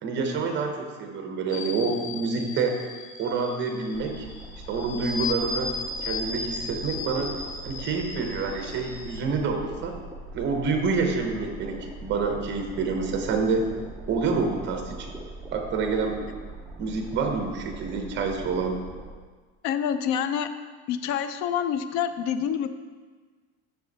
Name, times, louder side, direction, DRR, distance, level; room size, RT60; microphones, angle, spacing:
voice 1, 0.0-2.7 3.2-4.3 4.7-5.7 6.0-7.3 7.6-10.0 10.3-13.7 14.1-15.1 15.5-16.2 16.8-18.8, right 4 dB, 35° right, 4 dB, 0.9 m, -27 dB
sound 1, 1.5-9.2, left 3 dB, 75° left, 1.3 m, -36 dB
sound 2, 3.9-19.1, right 1 dB, ahead, 0.4 m, -41 dB
voice 2, 19.6-20.5 20.9-22.7, left 8 dB, 55° left, 11 dB, 0.5 m, -27 dB
6.0 x 6.0 x 4.0 m, 1.4 s
cardioid pair, 160°, 34 cm